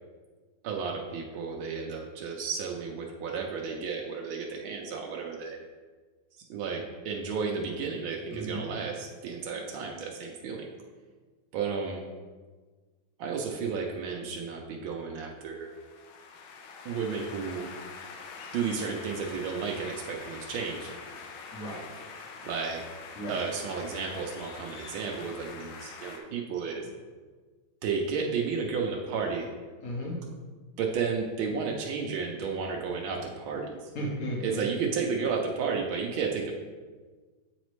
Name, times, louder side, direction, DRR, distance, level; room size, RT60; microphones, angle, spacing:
voice 1, 0.6-5.6 6.5-10.7 11.5-12.0 13.2-15.7 16.8-17.7 18.5-20.9 22.4-22.8 23.3-26.8 27.8-29.5 30.8-33.7 34.4-36.5, right 5 dB, 80° right, -1 dB, 1.4 m, -32 dB
voice 2, 8.3-8.6 21.5-21.8 23.2-23.4 29.8-30.1 33.9-34.6, equal, 50° left, -3 dB, 1.4 m, -34 dB
sound 1, 15.5-26.2, left 5 dB, 75° left, 1.3 m, -44 dB
8.0 x 4.1 x 3.1 m, 1.4 s
omnidirectional pair, 2.2 m